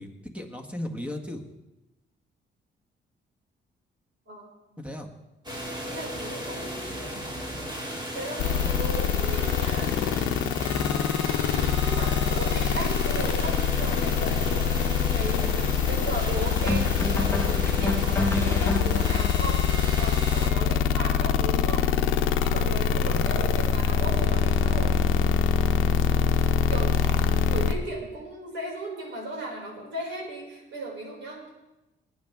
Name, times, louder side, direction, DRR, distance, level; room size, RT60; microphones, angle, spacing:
voice 1, 0.0-1.4 4.8-5.1 8.6-8.8 9.8-10.0 22.8-23.2, left 1 dB, 5° right, 4 dB, 1.6 m, -37 dB
sound 1, 5.4-20.5, equal, 20° right, 2.5 m, -35 dB
voice 2, 5.9-6.9 8.1-9.9 11.8-19.6 20.0-21.9 22.4-25.0 26.7-27.1 27.4-31.5, right 1 dB, 65° right, -3 dB, 5.6 m, -36 dB
sound 2, 8.4-27.7, left 7 dB, 85° left, 0.8 m, -24 dB
sound 3, 14.0-14.2 16.7-19.3, left 1 dB, 15° left, 1.4 m, -29 dB
19.5 x 9.4 x 3.6 m, 0.99 s
cardioid pair, 90°, 20 cm